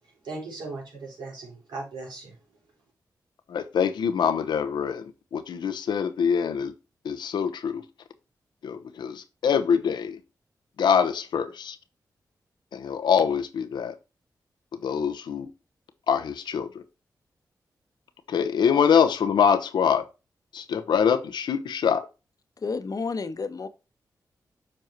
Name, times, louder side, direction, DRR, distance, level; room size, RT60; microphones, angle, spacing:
voice 1, 0.2-2.3, right 3 dB, 85° right, 3.8 m, -38 dB
voice 2, 3.5-5.0 5.3-6.7 7.0-7.8 8.6-10.2 10.8-11.8 12.7-13.9 14.8-15.5 16.1-16.8 18.3-20.1 20.5-22.1, left 7 dB, 85° left, 0.8 m, -24 dB
voice 3, 22.6-23.7, left 4 dB, 55° left, 1.0 m, -30 dB
7.6 x 4.5 x 4.4 m
cardioid pair, 50°, 7 cm